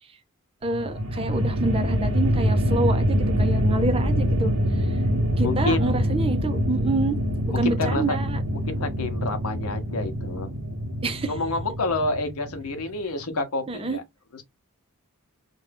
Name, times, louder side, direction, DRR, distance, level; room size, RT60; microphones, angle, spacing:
voice 1, 0.6-4.9 5.4-7.2 7.6-8.4 11.0-11.3 13.7-14.0, right 2 dB, 25° right, 0.4 m, -27 dB
sound 1, 0.7-13.0, equal, 90° right, 0.9 m, -25 dB
voice 2, 5.4-6.0 7.5-8.2 8.5-10.5 11.3-14.0 14.3-14.4, left 2 dB, 75° left, 0.8 m, -28 dB
2.5 x 2.2 x 3.3 m
head